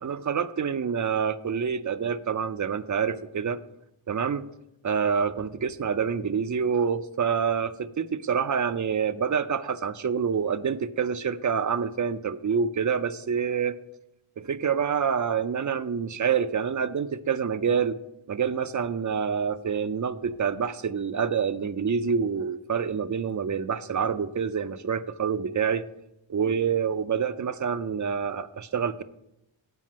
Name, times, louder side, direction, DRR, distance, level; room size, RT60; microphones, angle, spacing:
voice 1, 0.0-3.6 4.1-4.4 4.8-13.8 14.4-18.0 18.3-25.8 26.3-29.0, right 6 dB, 40° right, 13 dB, 0.5 m, -27 dB
7.7 x 4.9 x 7.3 m, 0.86 s
wide cardioid pair, 85°, 48 cm